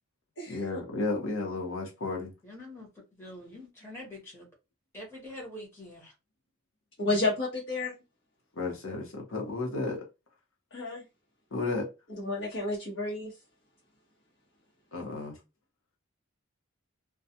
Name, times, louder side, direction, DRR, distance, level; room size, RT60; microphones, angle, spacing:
voice 1, 0.5-2.3 8.6-10.0 11.5-11.9 14.9-15.4, left 3 dB, 85° left, 1.0 m, -33 dB
voice 2, 2.4-4.5 4.9-6.1, left 1 dB, 10° left, 1.0 m, -45 dB
voice 3, 7.0-8.0 10.7-11.0 12.2-13.3, left 2 dB, 60° left, 1.0 m, -31 dB
2.3 x 2.3 x 2.7 m
head